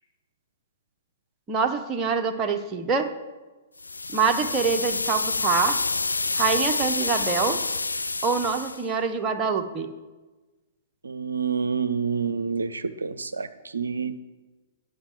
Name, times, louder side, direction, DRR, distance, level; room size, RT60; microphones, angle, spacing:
voice 1, 1.5-3.1 4.1-5.8 6.3-7.6 8.2-9.9, right 5 dB, 20° right, 4 dB, 0.8 m, -25 dB
sound 1, 3.8-8.8, left 3 dB, 75° left, 0.3 m, -28 dB
voice 2, 11.0-13.5 13.7-14.2, right 5 dB, 70° right, 11 dB, 0.5 m, -28 dB
10.0 x 6.2 x 7.1 m, 1.2 s
figure-of-eight pair, 110°, 0 cm